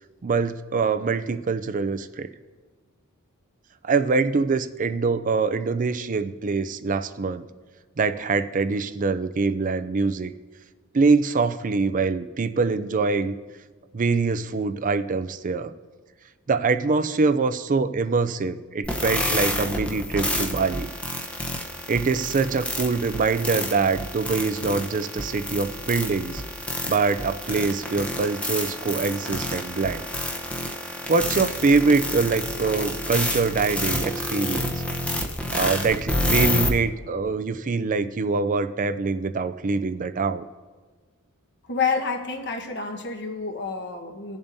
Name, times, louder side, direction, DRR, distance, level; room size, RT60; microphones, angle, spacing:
voice 1, 0.2-2.3 3.8-7.5 8.0-10.3 10.9-13.4 13.9-15.7 16.5-20.9 21.9-26.4 26.8-30.0 31.1-34.8 35.5-40.4, right 4 dB, 35° right, 10 dB, 0.4 m, -24 dB
sound 1, 18.8-36.7, left 1 dB, 5° left, 0.8 m, -29 dB
voice 2, 41.7-44.4, left 5 dB, 55° left, 4 dB, 1.3 m, -28 dB
18.0 x 7.0 x 2.7 m, 1.4 s
head